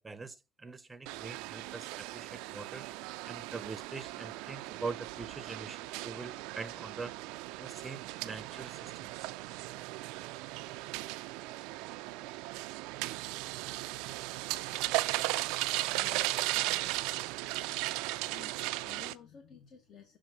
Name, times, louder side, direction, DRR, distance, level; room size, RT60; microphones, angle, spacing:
voice 1, 0.0-2.9 3.3-7.2 7.6-9.3, right 4 dB, 20° right, 0.6 m, -43 dB
sound 1, 1.1-19.1, right 18 dB, 80° right, 0.3 m, -37 dB
voice 2, 15.5-17.0 17.4-17.5 18.2-20.2, left 7 dB, 55° left, 1.2 m, -55 dB
7.0 x 2.6 x 5.5 m
supercardioid pair, 100°, 0 cm